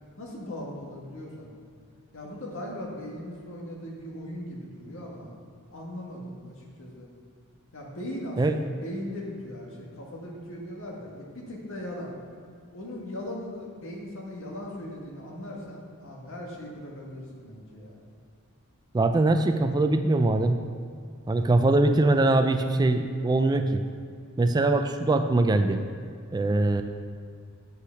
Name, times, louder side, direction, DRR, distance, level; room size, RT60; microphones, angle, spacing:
voice 1, 0.2-1.5 2.1-5.4 5.7-7.1 7.7-12.1 12.7-18.0, left 1 dB, 65° left, -2 dB, 1.8 m, -39 dB
voice 2, 18.9-20.6 21.3-23.8 24.4-25.8 26.3-26.8, right 2 dB, 20° right, 7 dB, 0.3 m, -22 dB
8.0 x 5.8 x 5.8 m, 2.3 s
head